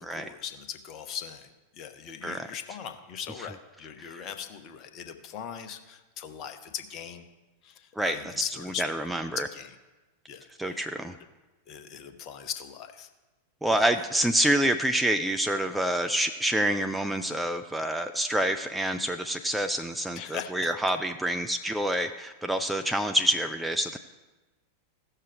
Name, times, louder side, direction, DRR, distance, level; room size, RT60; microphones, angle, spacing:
voice 1, 0.0-7.2 7.6-9.0 9.4-9.7 10.3-10.8 11.7-13.1 20.2-20.7, left 8 dB, 35° left, 8 dB, 0.8 m, -39 dB
voice 2, 8.0-8.3 8.8-9.5 10.6-11.1 13.6-24.0, right 1 dB, 5° right, 7 dB, 0.4 m, -27 dB
16.0 x 6.6 x 3.4 m, 1.2 s
figure-of-eight pair, 90°, 0 cm